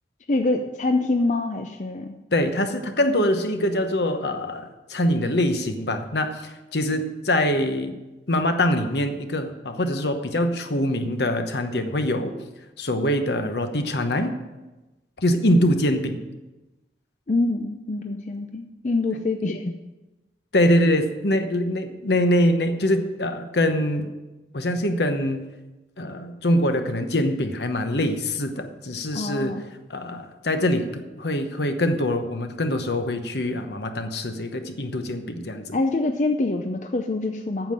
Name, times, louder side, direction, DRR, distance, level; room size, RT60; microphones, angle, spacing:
voice 1, 0.3-2.1 17.3-19.7 29.1-29.6 35.7-37.7, left 2 dB, 40° left, 5 dB, 0.5 m, -25 dB
voice 2, 2.3-8.0 8.3-12.3 12.8-14.3 15.2-16.2 20.5-24.1 24.5-25.4 26.0-29.6 29.9-35.8, left 1 dB, 75° left, 7 dB, 1.0 m, -24 dB
9.0 x 7.1 x 7.6 m, 1.1 s
head